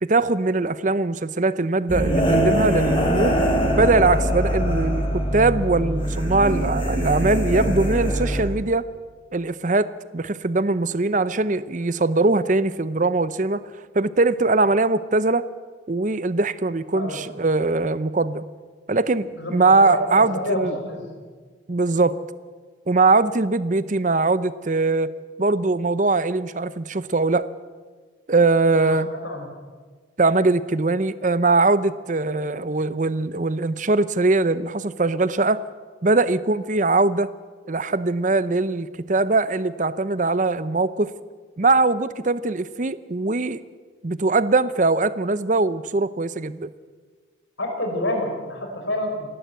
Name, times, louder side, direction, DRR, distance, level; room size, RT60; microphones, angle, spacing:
voice 1, 0.0-3.4 3.8-8.9 9.3-9.9 10.1-13.6 13.9-15.4 15.9-18.4 18.9-20.7 21.7-22.2 22.9-25.1 25.4-27.5 28.3-29.1 30.2-35.6 36.0-37.3 37.7-41.1 41.6-43.6 44.0-46.7, right 3 dB, 40° right, 15 dB, 0.7 m, -21 dB
sound 1, 1.9-8.4, equal, 25° left, 3.6 m, -22 dB
voice 2, 19.3-21.1 28.7-29.5 47.6-49.3, left 1 dB, 75° left, 3 dB, 4.8 m, -28 dB
28.0 x 12.0 x 8.1 m, 1.5 s
head